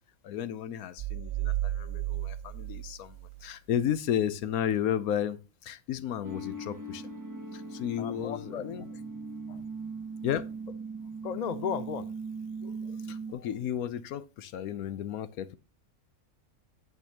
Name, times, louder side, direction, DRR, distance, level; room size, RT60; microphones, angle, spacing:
voice 1, 0.2-7.1 7.5-8.8 10.2-10.5 13.1-15.6, left 9 dB, 75° left, 1.1 m, -33 dB
sound 1, 1.0-3.6, right 14 dB, 80° right, 0.5 m, -34 dB
sound 2, 6.2-13.3, right 3 dB, 20° right, 0.5 m, -39 dB
voice 2, 8.0-8.6 9.5-9.6 11.2-12.1 12.6-13.5, left 7 dB, 40° left, 0.6 m, -36 dB
9.3 x 8.2 x 2.8 m
omnidirectional pair, 1.6 m